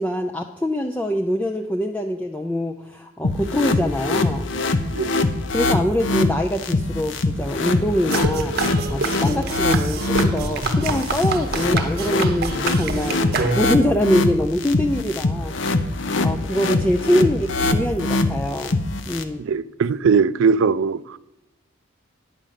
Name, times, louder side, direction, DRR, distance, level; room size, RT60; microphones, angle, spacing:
voice 1, 0.0-4.5 5.5-15.5 16.2-18.7 19.1-19.4, left 1 dB, 5° left, 0.4 m, -24 dB
sound 1, 3.2-19.2, left 2 dB, 60° left, 0.7 m, -23 dB
sound 2, 8.1-13.9, right 3 dB, 45° right, 0.8 m, -27 dB
voice 2, 19.4-21.2, right 5 dB, 70° right, 0.3 m, -20 dB
9.8 x 5.2 x 7.5 m
head